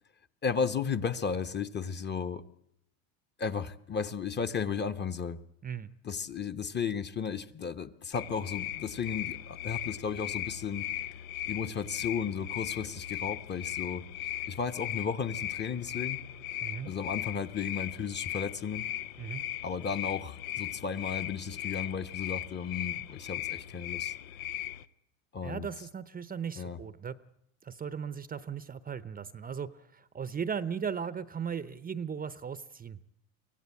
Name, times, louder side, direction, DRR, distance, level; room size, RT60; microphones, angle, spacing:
voice 1, 0.4-2.4 3.4-5.4 6.0-10.9 11.5-14.0 14.5-16.2 16.8-18.9 19.6-24.1 25.3-25.7 26.6-26.8, left 6 dB, 25° left, 11 dB, 1.0 m, -34 dB
sound 1, 8.1-24.8, left 12 dB, 80° left, 0.9 m, -38 dB
voice 2, 16.6-16.9 19.2-19.4 25.4-27.2 27.6-33.0, right 7 dB, 20° right, 15 dB, 0.7 m, -37 dB
24.0 x 17.0 x 8.5 m, 0.81 s
supercardioid pair, 100°, 41 cm